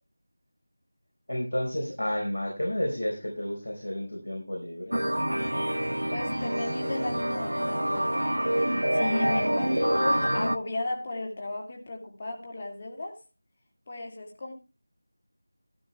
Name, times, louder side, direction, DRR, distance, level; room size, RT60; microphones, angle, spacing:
voice 1, 1.3-5.0, left 1 dB, 70° left, 0 dB, 4.4 m, -31 dB
sound 1, 4.9-10.6, right 1 dB, 80° right, 0.8 m, -27 dB
voice 2, 6.1-8.2 8.5-13.2 13.9-14.5, left 2 dB, 30° left, 2 dB, 2.4 m, -35 dB
12.5 x 12.5 x 3.3 m, 0.28 s
figure-of-eight pair, 170°, 0 cm